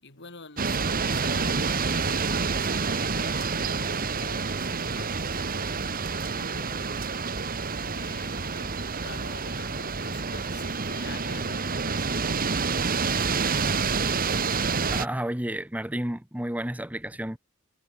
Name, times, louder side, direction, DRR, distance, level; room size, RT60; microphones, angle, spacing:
voice 1, 0.0-5.9 6.2-7.1 7.8-14.0, left 3 dB, 55° left, 6.6 m, -47 dB
sound 1, 0.6-15.1, right 4 dB, 40° right, 1.5 m, -28 dB
voice 2, 14.9-17.4, right 1 dB, 5° right, 1.2 m, -31 dB
head